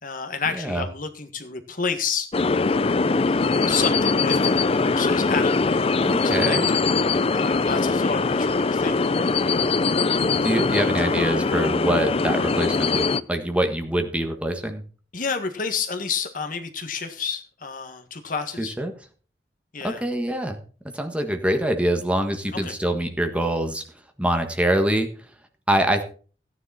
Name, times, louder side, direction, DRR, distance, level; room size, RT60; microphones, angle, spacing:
voice 1, 0.0-2.3 3.3-5.9 6.2-6.6 7.3-9.3 15.1-18.7 19.7-20.1 22.5-22.7, left 5 dB, 50° left, 6 dB, 1.7 m, -30 dB
sound 1, 2.3-13.2, left 4 dB, 35° left, 0.5 m, -22 dB
voice 2, 6.0-6.7 10.4-14.8 18.6-18.9 19.8-20.6 20.9-23.8 24.2-25.1 25.7-26.0, right 1 dB, 5° right, 5 dB, 1.5 m, -24 dB
15.0 x 10.0 x 4.2 m, 0.39 s
head